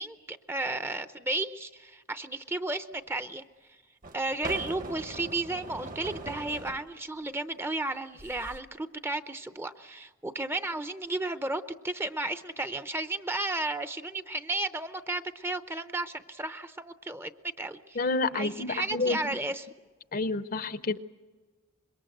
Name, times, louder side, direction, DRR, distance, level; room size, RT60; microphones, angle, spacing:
voice 1, 0.0-3.4 4.1-18.0 18.3-19.7, right 2 dB, 10° right, 11 dB, 0.7 m, -33 dB
sound 1, 2.9-3.0 4.0-6.9 8.1-8.6, right 2 dB, 40° right, 1.1 m, -40 dB
voice 2, 18.0-19.2 20.1-21.0, left 3 dB, 40° left, 13 dB, 0.7 m, -29 dB
26.0 x 22.5 x 7.8 m, 1.4 s
head